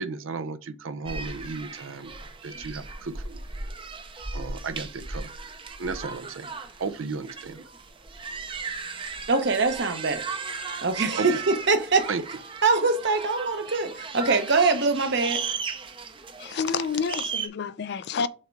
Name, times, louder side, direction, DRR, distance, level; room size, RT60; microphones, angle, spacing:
voice 1, 0.0-3.4 4.3-5.3 5.8-6.5 6.8-7.7 11.2-11.4 12.1-12.2, right 4 dB, 75° right, 0.5 m, -34 dB
sound 1, 1.1-17.5, right 5 dB, 25° right, 0.6 m, -36 dB
voice 2, 9.3-10.3 10.8-12.1 12.6-15.4, right 3 dB, 55° right, 0.9 m, -23 dB
voice 3, 16.4-18.3, left 5 dB, 55° left, 0.4 m, -29 dB
6.5 x 3.5 x 4.5 m
head